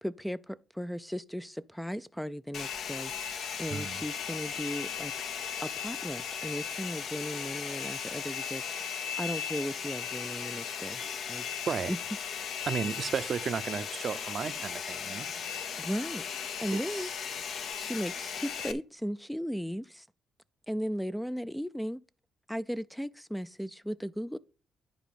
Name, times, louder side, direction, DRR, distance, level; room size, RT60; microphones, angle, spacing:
voice 1, 0.0-5.1 5.6-11.0 11.3-11.5 11.9-12.0 15.8-16.2 16.6-17.1 17.7-20.1 20.7-22.0 22.5-24.4, equal, ahead, 0.3 m, -36 dB
Domestic sounds home sounds, 2.5-18.7, left 7 dB, 70° left, 0.8 m, -37 dB
voice 2, 3.7-4.0 11.7-11.9 12.7-15.3 16.9-17.1, right 6 dB, 50° right, 0.5 m, -33 dB
10.0 x 4.1 x 5.3 m
cardioid pair, 95°, 0 cm